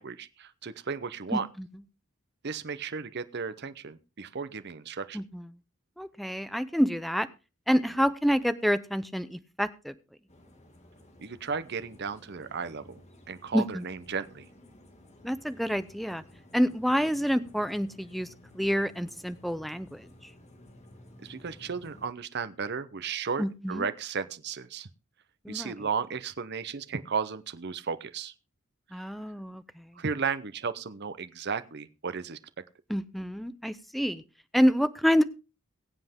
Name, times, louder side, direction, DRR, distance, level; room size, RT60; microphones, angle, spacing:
voice 1, 0.0-1.5 2.4-5.2 11.2-13.0 13.3-14.5 21.2-24.9 25.5-28.3 29.0-29.1 30.0-32.4, right 5 dB, 50° right, 12 dB, 0.7 m, -34 dB
voice 2, 1.3-1.7 5.1-5.5 6.0-7.3 7.7-9.9 13.5-13.8 15.2-16.2 16.5-18.3 18.5-20.1 23.4-23.8 25.4-25.7 28.9-29.8 32.9-34.2 34.5-35.2, equal, ahead, 13 dB, 0.6 m, -27 dB
sound 1, 10.3-22.1, left 1 dB, 30° left, 2.0 m, -54 dB
22.5 x 7.8 x 3.6 m, 0.30 s
head